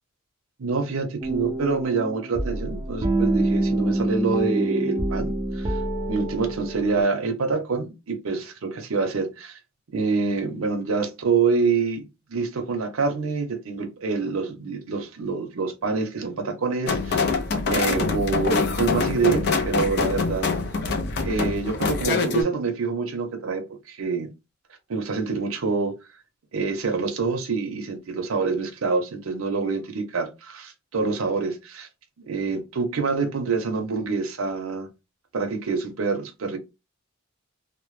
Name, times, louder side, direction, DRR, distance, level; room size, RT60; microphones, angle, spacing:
voice 1, 0.6-5.8 6.1-9.6 9.9-17.3 17.7-20.5 21.2-24.3 24.9-25.9 26.5-31.9 32.2-34.9 35.3-36.6, right 4 dB, 80° right, 0.6 m, -26 dB
sound 1, 1.2-7.0, right 1 dB, 20° right, 0.4 m, -26 dB
sound 2, 16.9-22.4, left 4 dB, 55° left, 0.4 m, -24 dB
2.1 x 2.0 x 3.0 m
head